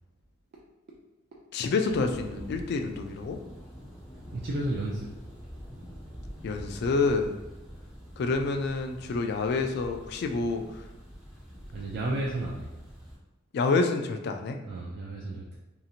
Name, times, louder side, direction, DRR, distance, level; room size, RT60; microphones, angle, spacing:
voice 1, 1.5-3.4 6.4-7.3 8.2-10.6 13.5-14.6, left 3 dB, 55° left, 5 dB, 0.3 m, -28 dB
Thunder, 1.8-13.2, equal, 5° right, 0.7 m, -45 dB
voice 2, 4.3-5.1 11.7-12.7 14.7-15.6, right 1 dB, 55° right, -3 dB, 0.3 m, -32 dB
2.8 x 2.7 x 2.4 m, 0.99 s
head